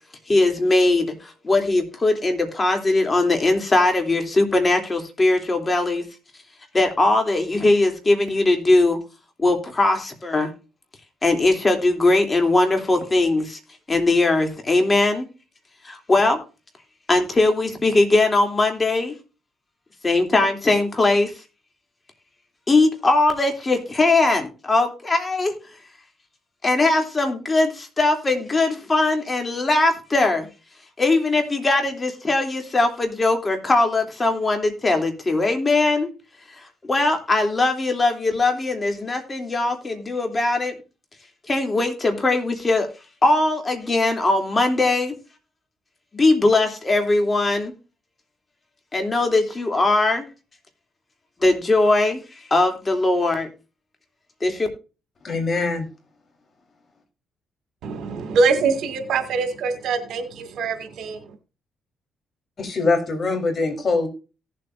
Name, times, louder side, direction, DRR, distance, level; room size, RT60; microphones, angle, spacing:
voice 1, 0.3-6.0 6.7-9.0 9.4-10.5 11.2-13.6 13.9-15.3 15.8-16.4 17.1-19.1 20.0-21.3 22.7-25.5 26.6-30.5 31.0-36.1 36.6-40.7 41.5-42.9 43.2-45.1 46.1-47.7 48.9-50.3 51.4-52.2 52.5-53.5 54.4-54.7, left 2 dB, 25° left, 3.0 m, -20 dB
voice 2, 55.2-55.9 62.6-64.1, left 3 dB, 45° left, 3.8 m, -23 dB
voice 3, 57.8-61.2, right 4 dB, 75° right, 2.1 m, -23 dB
17.5 x 7.7 x 2.6 m
cardioid pair, 90°, 0 cm